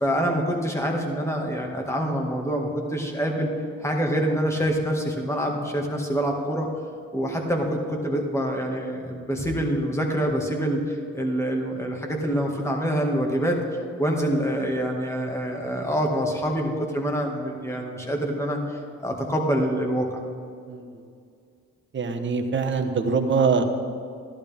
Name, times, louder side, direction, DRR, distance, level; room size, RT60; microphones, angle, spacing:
voice 1, 0.0-3.5 3.8-6.7 7.1-13.6 14.0-20.1, equal, 10° left, 0 dB, 2.0 m, -26 dB
voice 2, 20.7-21.0 21.9-23.6, right 5 dB, 40° right, 4 dB, 1.2 m, -23 dB
14.5 x 11.5 x 3.6 m, 2.3 s
cardioid pair, 90°, 30 cm